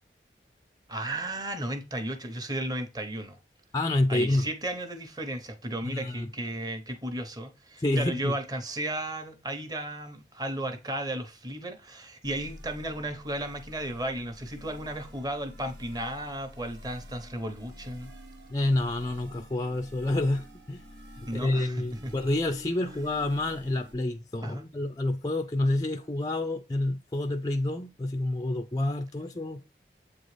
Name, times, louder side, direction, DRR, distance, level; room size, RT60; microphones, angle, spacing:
voice 1, 0.9-3.4 4.1-18.1 21.3-22.1 24.4-24.7, right 1 dB, 20° right, 0.9 m, -34 dB
voice 2, 3.7-4.5 5.8-6.3 7.8-8.3 18.5-20.8 21.2-29.7, left 2 dB, 20° left, 0.3 m, -28 dB
sound 1, 12.2-23.9, equal, 80° right, 1.2 m, -48 dB
7.9 x 3.9 x 3.2 m
head